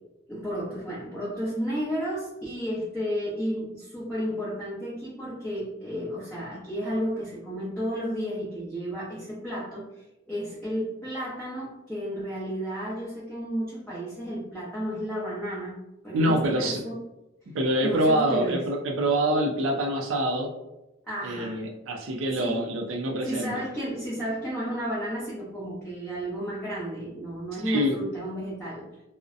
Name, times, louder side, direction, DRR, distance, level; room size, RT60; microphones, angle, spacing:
voice 1, 0.3-9.8 10.3-15.8 16.0-17.0 17.8-18.6 21.1-21.6 22.3-22.6 23.2-28.8, equal, 5° left, -10 dB, 0.6 m, -32 dB
voice 2, 16.1-16.8 17.5-20.5 21.2-23.6 27.7-27.9, right 1 dB, 70° right, 1 dB, 0.4 m, -25 dB
2.6 x 2.0 x 2.4 m, 0.95 s
head